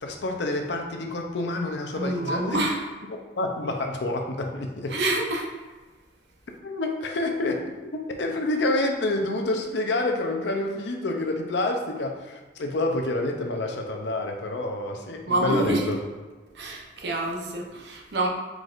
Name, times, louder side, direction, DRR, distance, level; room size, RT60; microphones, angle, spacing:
voice 1, 0.0-2.6 3.1-5.0 6.6-16.0, left 2 dB, 75° left, 3 dB, 0.6 m, -28 dB
voice 2, 2.0-2.8 4.9-5.5 15.3-15.9 16.5-18.3, right 2 dB, 70° right, 0 dB, 0.8 m, -27 dB
4.6 x 4.0 x 2.5 m, 1.3 s
head